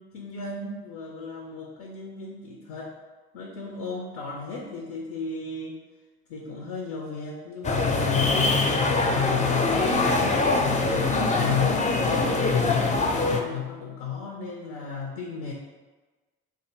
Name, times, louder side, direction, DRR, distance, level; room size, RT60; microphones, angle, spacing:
voice 1, 0.0-2.9 3.3-5.8 6.3-8.7 9.0-12.8 13.1-15.5, left 6 dB, 70° left, 0 dB, 0.6 m, -34 dB
sound 1, 7.6-13.4, left 3 dB, 20° left, 0.5 m, -23 dB
2.5 x 2.5 x 4.2 m, 1.3 s
hypercardioid pair, 45°, 32 cm